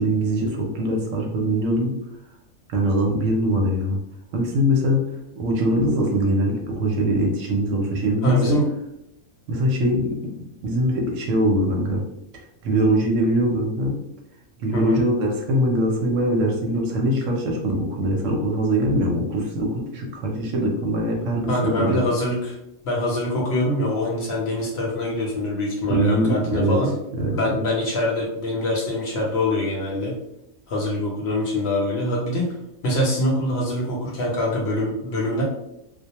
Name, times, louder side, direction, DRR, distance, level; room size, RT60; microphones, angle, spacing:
voice 1, 0.0-2.0 2.7-4.0 4.3-5.1 5.4-8.6 9.5-10.1 10.6-12.0 12.6-14.0 14.6-22.0 25.9-26.8 27.2-27.4, equal, 70° right, 0 dB, 0.9 m, -22 dB
voice 2, 8.2-8.7 14.7-15.0 21.5-22.6 22.8-26.9 27.3-30.1 30.7-32.5 32.8-35.4, left 1 dB, 60° left, -4 dB, 0.8 m, -24 dB
2.3 x 2.1 x 2.8 m, 0.80 s
omnidirectional pair, 1.4 m